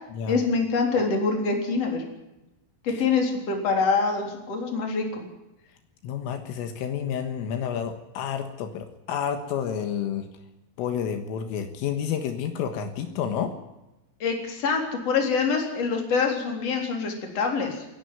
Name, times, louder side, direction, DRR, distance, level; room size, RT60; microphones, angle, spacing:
voice 1, 0.3-2.0 2.8-5.2 14.2-17.9, left 4 dB, 30° left, 2 dB, 4.2 m, -25 dB
voice 2, 6.0-10.3 10.8-13.5, left 8 dB, 75° left, 7 dB, 4.0 m, -30 dB
28.0 x 11.5 x 9.6 m, 0.95 s
omnidirectional pair, 6.0 m